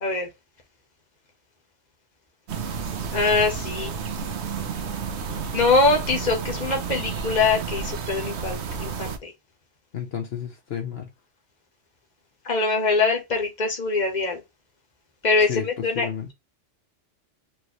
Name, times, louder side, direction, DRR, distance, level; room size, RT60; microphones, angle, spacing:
sound 1, 2.5-9.2, right 6 dB, 65° right, 1.1 m, -31 dB
voice 1, 3.1-3.9 5.5-9.3 12.4-14.4 15.2-16.1, left 3 dB, 35° left, 1.5 m, -23 dB
voice 2, 9.9-11.1 15.4-16.3, left 8 dB, 60° left, 1.0 m, -32 dB
4.6 x 3.0 x 3.0 m
omnidirectional pair, 1.2 m